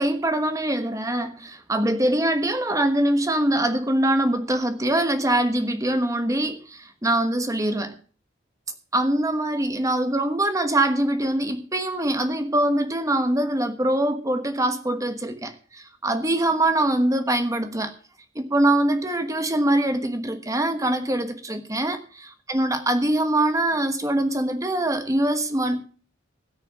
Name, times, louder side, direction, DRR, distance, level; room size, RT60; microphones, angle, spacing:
voice 1, 0.0-7.9 8.9-17.9 18.3-25.8, right 1 dB, 20° right, 7 dB, 1.3 m, -23 dB
17.0 x 6.7 x 6.2 m, 0.41 s
head